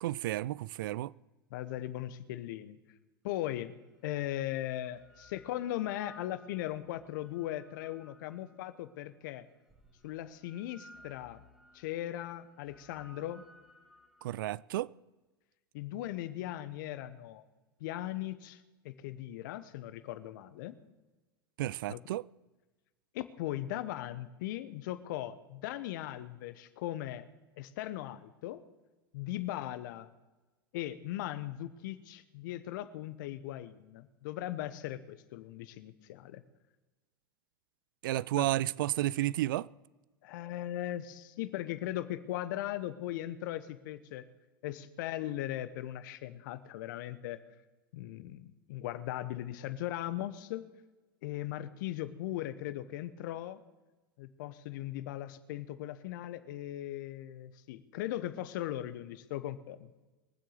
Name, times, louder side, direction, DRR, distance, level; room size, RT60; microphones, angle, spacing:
voice 1, 0.0-1.1 14.2-14.9 21.6-22.2 38.0-39.7, right 15 dB, 65° right, 0.4 m, -32 dB
voice 2, 1.5-2.8 3.2-3.7 4.0-9.5 10.0-11.4 11.7-13.4 15.7-17.4 17.8-20.8 21.9-22.0 23.1-27.3 27.6-28.6 29.1-30.1 30.7-36.4 38.3-38.5 40.2-44.2 44.6-47.4 47.9-50.7 51.2-53.6 54.2-59.9, left 13 dB, 60° left, 1.1 m, -38 dB
sound 1, 4.9-8.9 9.7-14.4, left 1 dB, 5° right, 2.2 m, -58 dB
22.5 x 7.7 x 6.6 m
hypercardioid pair, 90°, 12 cm